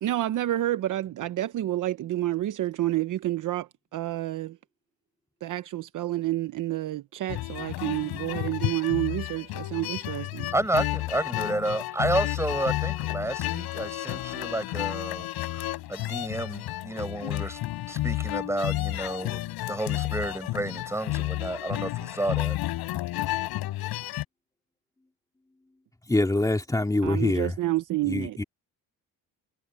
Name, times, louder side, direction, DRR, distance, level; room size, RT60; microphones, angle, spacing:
voice 1, 0.0-4.6 5.4-10.5 27.0-28.3, right 15 dB, 55° right, 0.8 m, -29 dB
sound 1, 7.3-24.2, left 16 dB, 90° left, 6.3 m, -31 dB
voice 2, 10.5-15.3 15.5-15.6 15.9-17.6 17.9-19.4 19.7-22.6, right 1 dB, 5° right, 6.7 m, -30 dB
voice 3, 26.0-27.6 28.0-28.4, left 2 dB, 10° left, 3.0 m, -25 dB
cardioid pair, 130°, 36 cm